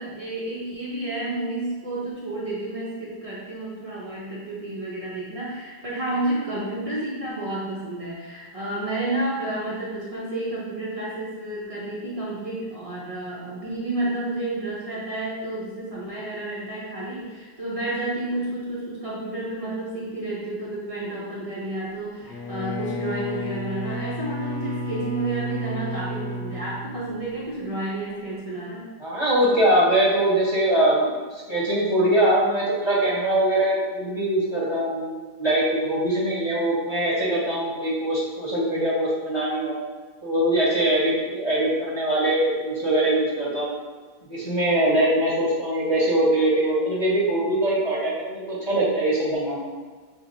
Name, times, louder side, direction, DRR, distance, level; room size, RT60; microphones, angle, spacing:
voice 1, 0.0-28.9, right 2 dB, 50° right, -7 dB, 0.4 m, -31 dB
Bowed string instrument, 22.2-27.6, left 1 dB, 90° left, 1.2 m, -32 dB
voice 2, 29.0-39.8 40.2-43.7 44.2-49.7, right 1 dB, 20° left, -8 dB, 1.0 m, -22 dB
5.8 x 2.8 x 2.7 m, 1.4 s
omnidirectional pair, 1.8 m